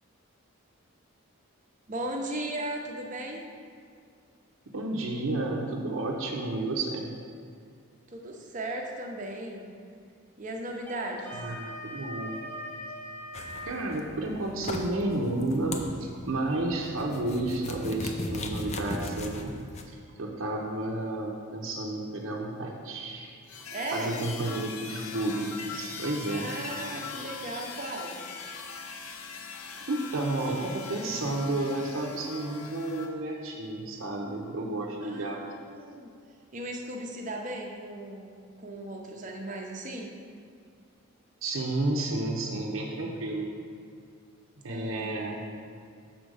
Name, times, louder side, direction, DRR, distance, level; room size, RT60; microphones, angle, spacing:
voice 1, 1.9-3.4 8.1-9.6 10.4-11.4 23.7-24.2 26.3-28.2 35.0-36.1 36.5-40.1 44.7-45.4, right 1 dB, 35° right, 1 dB, 0.7 m, -37 dB
voice 2, 4.7-7.0 11.3-12.4 13.7-19.5 19.9-26.5 29.9-35.4 41.4-43.5 44.6-45.4, right 2 dB, 65° right, -1 dB, 0.7 m, -31 dB
Wind instrument woodwind instrument, 10.8-13.9, equal, 5° left, 1.0 m, -40 dB
sound 1, 13.3-19.8, left 2 dB, 30° left, 0.4 m, -39 dB
sound 2, 23.5-33.1, left 5 dB, 80° left, 0.7 m, -41 dB
6.5 x 4.4 x 6.3 m, 2.2 s
head